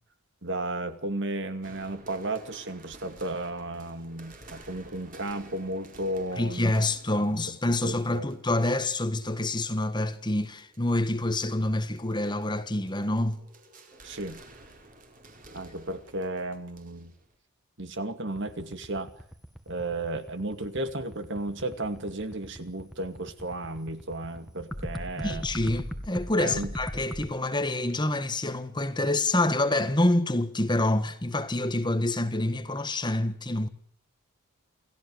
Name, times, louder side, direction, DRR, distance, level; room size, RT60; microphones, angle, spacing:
voice 1, 0.4-6.7 7.1-7.3 7.7-8.3 14.0-14.4 15.5-17.1 17.8-19.1 19.7-25.5 26.4-26.7, right 2 dB, 55° right, 2.5 m, -34 dB
sound 1, 1.6-17.4, right 2 dB, 35° right, 4.8 m, -53 dB
voice 2, 6.4-13.4 25.2-33.7, left 1 dB, 20° left, 1.6 m, -27 dB
sound 2, 18.3-27.3, equal, ahead, 2.1 m, -39 dB
29.0 x 15.5 x 7.9 m
head